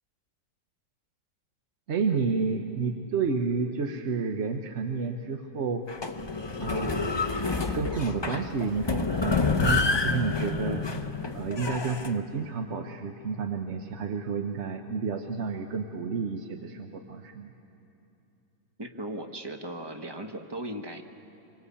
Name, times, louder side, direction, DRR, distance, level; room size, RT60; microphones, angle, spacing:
voice 1, 1.9-5.8 6.6-7.3 7.7-10.8 11.3-17.5, right 5 dB, 50° right, 5 dB, 1.0 m, -30 dB
sound 1, 5.9-12.1, left 3 dB, 30° left, 0.5 m, -28 dB
voice 2, 18.8-21.0, right 1 dB, 15° right, 5 dB, 1.1 m, -37 dB
26.5 x 23.5 x 8.5 m, 2.8 s
omnidirectional pair, 1.9 m